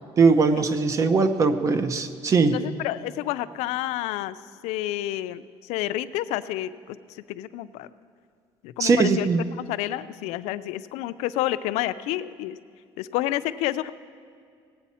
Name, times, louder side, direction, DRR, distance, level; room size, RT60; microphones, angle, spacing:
voice 1, 0.2-2.6 8.8-9.4, right 4 dB, 30° right, 10 dB, 0.6 m, -20 dB
voice 2, 2.5-4.4 4.6-7.9 8.6-9.3 9.7-12.6 13.0-13.9, left 14 dB, 85° left, 14 dB, 0.4 m, -29 dB
17.5 x 8.2 x 4.2 m, 2.2 s
cardioid pair, 165°, 11 cm